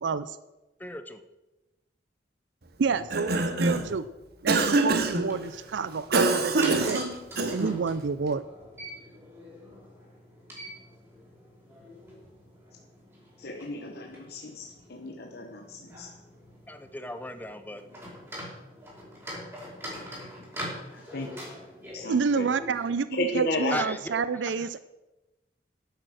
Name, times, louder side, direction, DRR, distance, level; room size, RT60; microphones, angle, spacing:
voice 1, 0.0-0.4 2.8-4.1 4.4-7.0 7.5-8.4 22.1-24.8, right 5 dB, 80° right, 14 dB, 0.5 m, -29 dB
voice 2, 0.8-1.2 16.7-17.8 23.7-24.0 24.6-24.8, left 1 dB, 10° left, 9 dB, 0.7 m, -36 dB
Cough, 2.9-3.9 4.5-5.3 6.1-7.8, right 2 dB, 60° right, 1.2 m, -25 dB
sound 1, 4.9-22.9, equal, 15° right, 5.2 m, -44 dB
voice 3, 13.4-16.1 20.9-21.3 21.9-22.5 23.1-23.8, left 2 dB, 60° left, 1 dB, 1.2 m, -33 dB
11.0 x 10.0 x 6.4 m, 1.0 s
head